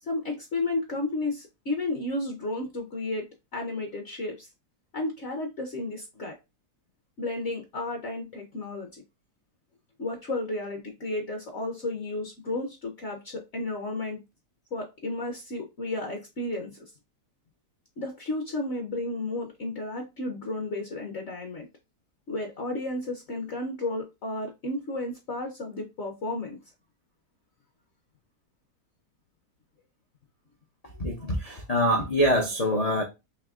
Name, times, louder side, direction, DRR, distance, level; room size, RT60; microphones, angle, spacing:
voice 1, 0.0-3.3 3.5-4.5 4.9-6.4 7.2-9.0 10.0-14.2 14.7-16.8 18.0-21.7 22.3-26.6, left 2 dB, 55° left, 0.9 m, -32 dB
voice 2, 31.0-33.0, equal, 85° left, 0.3 m, -24 dB
3.6 x 2.8 x 3.5 m
omnidirectional pair, 1.7 m